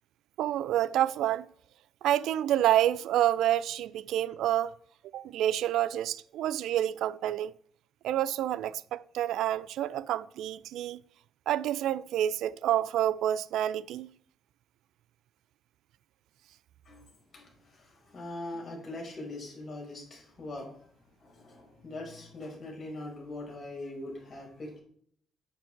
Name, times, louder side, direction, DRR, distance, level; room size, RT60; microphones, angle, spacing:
voice 1, 0.4-1.5 2.0-4.7 5.1-7.5 8.0-11.0 11.5-14.1, right 12 dB, 85° right, 0.4 m, -28 dB
voice 2, 16.8-20.7 21.2-24.8, left 2 dB, 40° left, 5.0 m, -42 dB
8.8 x 8.0 x 4.5 m
cardioid pair, 90°, 0 cm